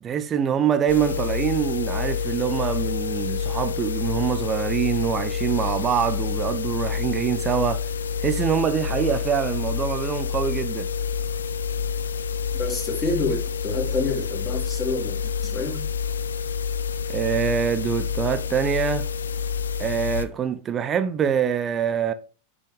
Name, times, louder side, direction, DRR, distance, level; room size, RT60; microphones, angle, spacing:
voice 1, 0.0-7.8 8.2-10.9 17.1-19.1 19.8-22.1, right 8 dB, 25° right, 0.8 m, -25 dB
sound 1, 0.9-20.2, left 6 dB, 70° left, 0.7 m, -28 dB
voice 2, 12.6-15.8, left 3 dB, 20° left, 3.7 m, -28 dB
9.9 x 6.2 x 3.8 m
figure-of-eight pair, 90°, 0 cm